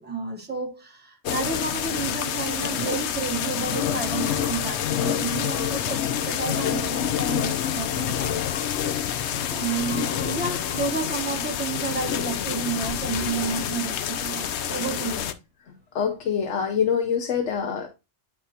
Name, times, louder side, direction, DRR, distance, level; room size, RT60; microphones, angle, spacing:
voice 1, 0.0-8.4 9.0-9.1 9.5-15.2, right 5 dB, 10° right, 0.9 m, -31 dB
sound 1, 1.3-15.3, left 9 dB, 70° left, 0.9 m, -27 dB
voice 2, 15.7-17.9, left 7 dB, 90° left, 1.2 m, -25 dB
9.8 x 3.5 x 2.8 m
omnidirectional pair, 1.2 m